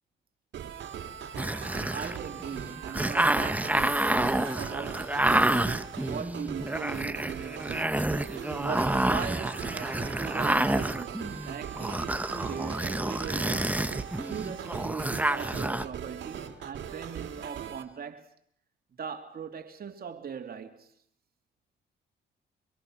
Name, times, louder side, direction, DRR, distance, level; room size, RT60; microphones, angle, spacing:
sound 1, 0.5-17.8, right 8 dB, 70° right, 2.9 m, -40 dB
sound 2, 1.4-15.8, right 1 dB, 5° right, 1.1 m, -29 dB
voice 1, 1.9-8.1 8.6-13.8 14.3-18.3 19.0-20.9, right 6 dB, 50° right, 3.1 m, -40 dB
25.5 x 23.5 x 6.4 m
cardioid pair, 90°, 20 cm